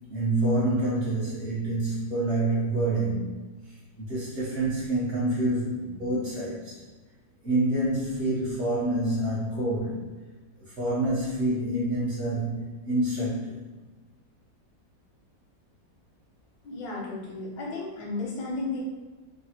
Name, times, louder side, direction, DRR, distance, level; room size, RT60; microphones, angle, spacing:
voice 1, 0.1-3.3 4.0-6.8 7.4-10.0 10.6-13.6, right 1 dB, 75° right, -7 dB, 0.5 m, -27 dB
voice 2, 16.6-18.8, left 3 dB, 85° left, -4 dB, 1.3 m, -33 dB
3.6 x 2.1 x 2.7 m, 1.2 s
omnidirectional pair, 2.0 m